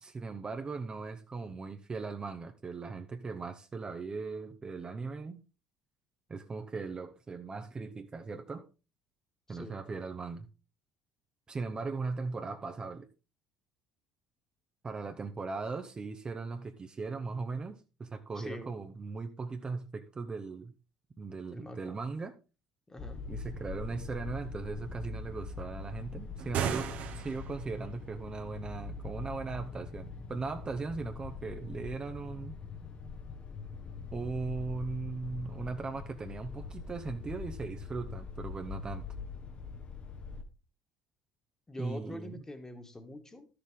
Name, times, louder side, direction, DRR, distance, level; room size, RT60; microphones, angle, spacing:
voice 1, 0.0-5.4 6.3-8.7 9.5-10.5 11.5-13.1 14.8-20.7 21.2-22.3 23.3-32.6 34.1-39.1 41.8-42.4, right 4 dB, 30° right, 0.9 m, -38 dB
voice 2, 9.5-9.8 18.3-18.7 21.5-22.0 22.9-23.2 41.7-43.5, left 1 dB, 15° left, 1.7 m, -45 dB
sound 1, 23.0-40.4, left 4 dB, 45° left, 1.2 m, -43 dB
sound 2, 26.4-27.7, right 9 dB, 60° right, 1.1 m, -34 dB
11.5 x 6.8 x 3.7 m
hypercardioid pair, 60°, 3 cm